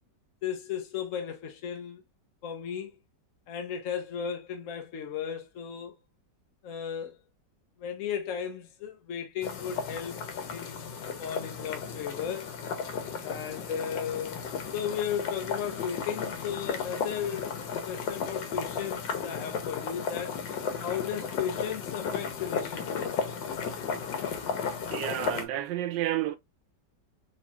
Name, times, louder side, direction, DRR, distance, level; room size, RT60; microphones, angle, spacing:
voice 1, 0.4-2.0 2.4-2.9 3.5-6.0 6.6-7.2 7.8-10.2 10.5-10.8 11.2-12.5 13.2-17.6 17.9-20.4 20.8-23.1, left 8 dB, 60° left, 0.9 m, -35 dB
sound 1, 9.4-25.5, left 6 dB, 85° left, 1.5 m, -34 dB
voice 2, 24.9-26.4, right 13 dB, 85° right, 1.3 m, -31 dB
4.3 x 3.5 x 2.3 m
omnidirectional pair, 1.9 m